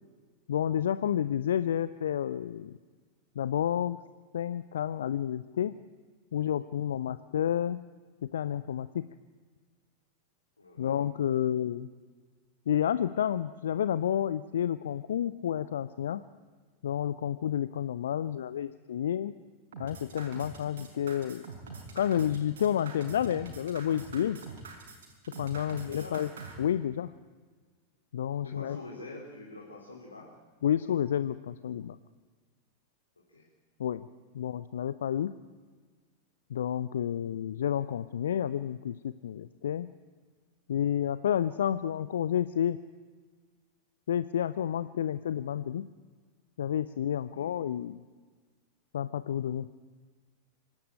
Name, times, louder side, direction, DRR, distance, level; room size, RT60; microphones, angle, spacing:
voice 1, 0.5-2.7 3.4-4.0 4.3-5.7 6.3-7.8 8.2-9.0 10.8-11.9 12.7-16.2 16.8-19.3 19.8-21.5 21.9-24.4 25.4-26.3 26.6-27.1 28.1-28.8 30.6-32.0 33.8-34.1 34.3-35.3 36.5-39.9 40.7-42.8 44.1-45.8 46.6-48.0 48.9-49.7, left 10 dB, 65° left, 14 dB, 0.5 m, -30 dB
voice 2, 10.6-11.0 25.7-26.2 28.3-30.3 33.3-33.4 47.2-47.5, left 2 dB, 80° left, -1 dB, 3.2 m, -46 dB
sound 1, 19.7-26.5, right 5 dB, 60° right, 5.1 m, -44 dB
25.5 x 11.5 x 8.9 m, 1.5 s
figure-of-eight pair, 90°, 0 cm